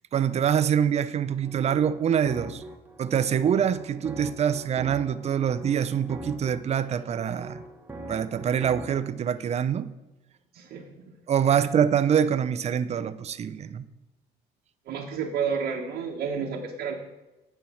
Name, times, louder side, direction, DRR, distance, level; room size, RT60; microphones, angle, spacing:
voice 1, 0.1-2.6 3.0-7.6 8.1-9.9 11.3-13.9, right 8 dB, 40° right, 0.5 m, -25 dB
sound 1, 1.4-9.1, right 1 dB, 10° right, 1.0 m, -43 dB
voice 2, 10.5-11.0 11.5-11.6 14.9-17.0, right 6 dB, 70° right, 1.2 m, -31 dB
9.5 x 4.6 x 7.0 m
cardioid pair, 110°, 17 cm